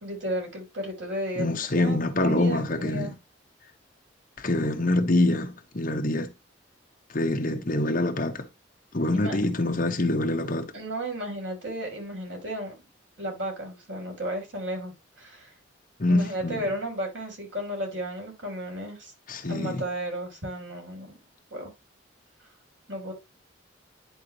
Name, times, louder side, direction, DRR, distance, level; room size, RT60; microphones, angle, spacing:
voice 1, 0.0-3.1 9.1-9.4 10.7-12.7 13.2-15.5 16.1-19.1 19.5-21.1 21.5-21.7 22.9-23.1, right 1 dB, 70° right, 3.9 m, -34 dB
voice 2, 1.4-3.1 4.4-6.3 7.1-8.5 8.9-10.7 16.0-16.6 19.3-19.8, left 2 dB, 45° left, 1.2 m, -25 dB
10.5 x 3.9 x 3.0 m
head